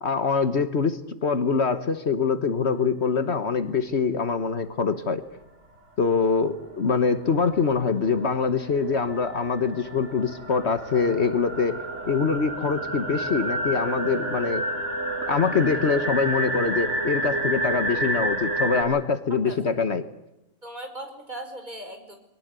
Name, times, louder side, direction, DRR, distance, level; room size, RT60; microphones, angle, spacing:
voice 1, 0.0-5.2 6.0-11.8 12.1-14.6 15.3-20.0, left 5 dB, 60° left, 11 dB, 1.5 m, -24 dB
sound 1, 6.0-6.1 6.4-18.8, right 1 dB, 65° right, 5.4 m, -30 dB
voice 2, 19.3-19.8 20.6-22.2, right 1 dB, 35° right, 5 dB, 4.9 m, -38 dB
23.0 x 19.5 x 8.2 m, 0.90 s
omnidirectional pair, 1.3 m